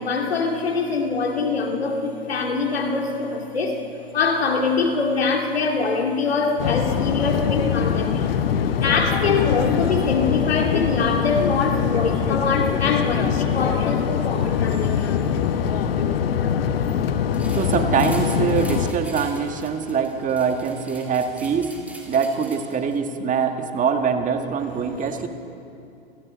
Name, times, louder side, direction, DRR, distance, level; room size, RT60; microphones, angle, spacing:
voice 1, 0.0-3.8 4.1-8.5 8.8-15.3 25.1-25.2, left 4 dB, 90° left, 3 dB, 2.7 m, -24 dB
sound 1, 6.6-18.9, left 8 dB, 70° left, 1.3 m, -23 dB
sound 2, 17.3-23.0, right 1 dB, 5° right, 3.6 m, -43 dB
voice 2, 17.6-21.7 22.1-25.3, right 6 dB, 25° right, 6 dB, 1.7 m, -23 dB
28.5 x 18.0 x 5.2 m, 2.6 s
hypercardioid pair, 105°, 30 cm